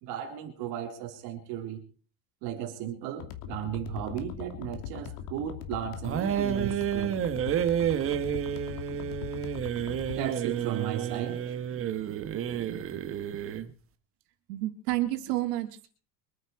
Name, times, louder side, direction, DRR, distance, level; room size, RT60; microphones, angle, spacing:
voice 1, 0.0-1.8 2.4-7.2 10.1-11.6, right 10 dB, 55° right, 3 dB, 3.7 m, -35 dB
sound 1, 3.2-10.2, left 10 dB, 75° left, 2.8 m, -41 dB
sound 2, 6.0-13.7, right 9 dB, 30° right, 1.3 m, -30 dB
voice 2, 14.5-15.9, right 16 dB, 90° right, 5 dB, 3.3 m, -30 dB
25.0 x 9.4 x 4.7 m, 0.40 s
cardioid pair, 170°, 46 cm